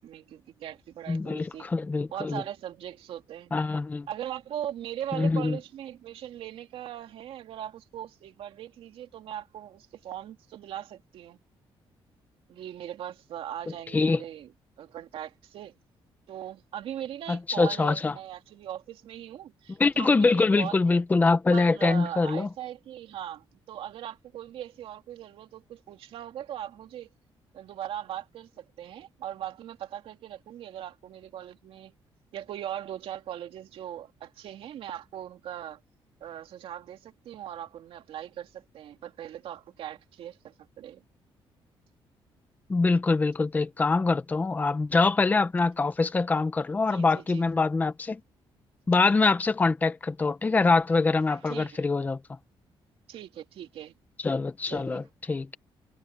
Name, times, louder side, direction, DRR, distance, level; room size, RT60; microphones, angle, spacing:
voice 1, 0.0-1.7 2.1-3.5 4.1-11.4 12.5-14.5 14.8-15.7 16.3-21.0 21.5-27.1 27.5-31.9 32.3-35.8 36.2-41.0 46.9-47.5 51.3-51.8 53.1-53.9 54.7-55.0, right 11 dB, 75° right, 2.4 m, -40 dB
voice 2, 1.1-2.4 3.5-4.1 5.1-5.6 13.9-14.2 17.3-18.1 19.8-22.5 42.7-48.2 48.9-52.2 54.2-55.6, left 3 dB, 20° left, 0.8 m, -24 dB
cardioid pair, 165°, 10 cm